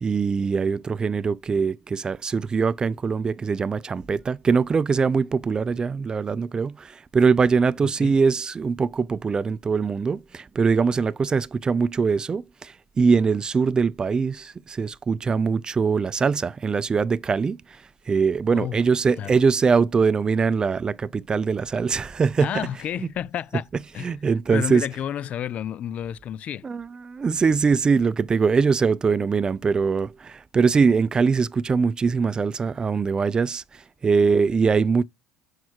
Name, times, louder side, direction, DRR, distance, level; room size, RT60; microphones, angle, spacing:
voice 1, 0.0-17.6 18.1-22.8 23.8-24.9 26.6-33.6 34.0-35.0, right 5 dB, 25° right, 0.4 m, -22 dB
voice 2, 22.4-23.7 23.9-24.1 24.5-26.7, left 10 dB, 50° left, 0.4 m, -30 dB
6.2 x 4.8 x 4.5 m
supercardioid pair, 85°, 3 cm